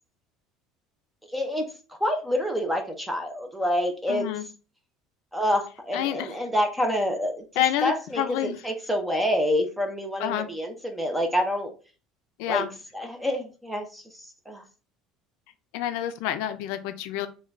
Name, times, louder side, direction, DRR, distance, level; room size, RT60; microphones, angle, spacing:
voice 1, 1.3-1.7 2.0-4.3 5.3-7.4 7.8-11.7 12.5-12.7 12.9-14.6, equal, 5° right, 4 dB, 0.6 m, -27 dB
voice 2, 4.1-4.4 5.9-6.3 7.6-8.6 10.2-10.5 12.4-12.7 15.7-17.3, left 11 dB, 75° left, 10 dB, 0.3 m, -28 dB
3.8 x 2.2 x 3.0 m, 0.35 s
cardioid pair, 160°, 0 cm